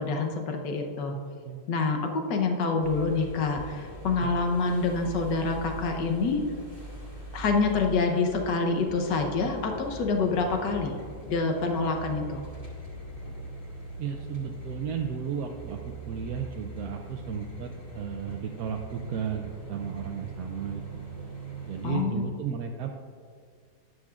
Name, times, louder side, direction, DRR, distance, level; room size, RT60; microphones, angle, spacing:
voice 1, 0.0-1.1 1.7-6.4 7.3-11.0 11.2-12.4 21.8-22.3, left 4 dB, 85° left, 3 dB, 1.6 m, -27 dB
voice 2, 1.1-1.6 4.2-4.3 14.0-20.8 21.7-23.0, right 7 dB, 70° right, 2 dB, 1.0 m, -34 dB
sound 1, 2.8-22.0, right 1 dB, 20° left, 1.8 m, -42 dB
12.5 x 9.8 x 2.4 m, 2.1 s
omnidirectional pair, 1.8 m